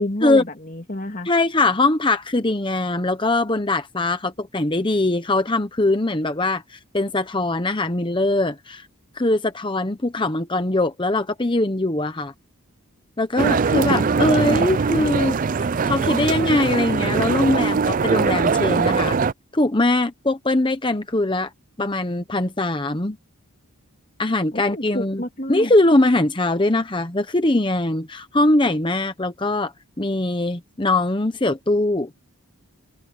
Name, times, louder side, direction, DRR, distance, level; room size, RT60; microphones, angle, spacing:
voice 1, 0.0-1.3 13.8-14.7 24.5-25.7, left 1 dB, 35° left, 2.7 m, -30 dB
voice 2, 1.2-8.9 9.2-12.3 13.2-19.2 19.5-21.5 21.8-23.2 24.2-25.2 25.5-32.1, left 2 dB, 20° left, 0.9 m, -21 dB
sound 1, 13.4-19.3, right 5 dB, 35° right, 0.4 m, -21 dB
head